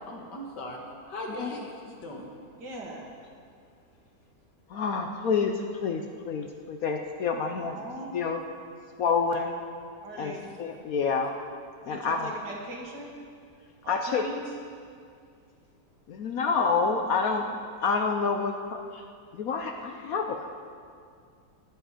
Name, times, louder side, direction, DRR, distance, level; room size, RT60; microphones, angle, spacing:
voice 1, 0.1-0.8 1.1-2.3 10.3-10.6, left 1 dB, 80° left, 0 dB, 2.2 m, -39 dB
voice 2, 2.6-3.1 7.6-8.2 10.0-10.5 11.9-13.2 13.8-14.6, right 1 dB, 80° right, -1 dB, 2.5 m, -40 dB
voice 3, 4.7-5.5 5.8-7.8 8.1-8.4 9.0-9.6 10.2-10.3 10.6-11.3 11.9-12.3 13.9-14.3 16.1-17.4 17.8-18.8 19.4-20.5, left 5 dB, 65° left, 4 dB, 1.1 m, -28 dB
20.0 x 7.5 x 5.1 m, 2.2 s
omnidirectional pair, 1.8 m